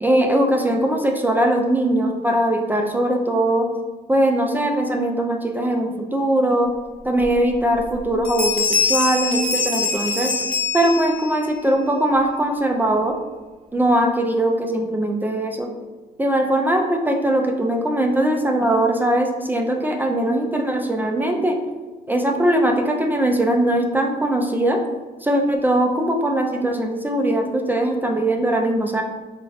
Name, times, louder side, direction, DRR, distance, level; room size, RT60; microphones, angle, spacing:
voice 1, 0.0-3.7 4.1-6.7 7.0-10.3 10.7-13.2 13.7-15.7 16.2-21.6 22.1-24.8 25.2-29.0, right 1 dB, 10° right, 2 dB, 0.3 m, -20 dB
sound 1, 7.2-7.3 7.7-8.0 8.2-11.4, left 4 dB, 5° left, 0.8 m, -23 dB
3.7 x 2.5 x 3.1 m, 1.3 s
cardioid pair, 110°, 17 cm